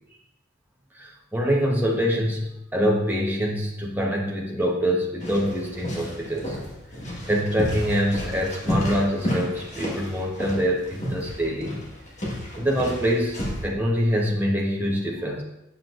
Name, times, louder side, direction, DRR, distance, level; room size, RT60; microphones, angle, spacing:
voice 1, 0.9-6.6 7.3-11.8 12.6-15.4, equal, 10° right, -2 dB, 1.0 m, -25 dB
sound 1, 5.2-13.6, left 1 dB, 35° left, 1.6 m, -31 dB
7.8 x 6.7 x 2.5 m, 0.86 s
head